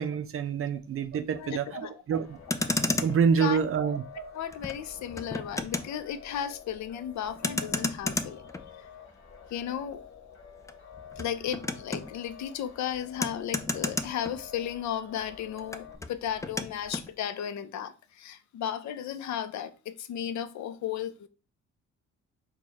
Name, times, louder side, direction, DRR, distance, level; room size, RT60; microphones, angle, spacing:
voice 1, 0.0-2.4 3.0-4.3, right 6 dB, 45° right, 0.5 m, -27 dB
voice 2, 1.4-1.9 3.4-4.0 4.3-8.5 9.5-10.0 11.2-21.3, left 9 dB, 65° left, 0.6 m, -35 dB
sound 1, 2.1-16.0, left 7 dB, 45° left, 1.2 m, -50 dB
Motor vehicle (road), 2.3-14.9 15.2-17.1, left 2 dB, 10° left, 0.4 m, -35 dB
4.6 x 2.3 x 4.1 m
cardioid pair, 90°, 30 cm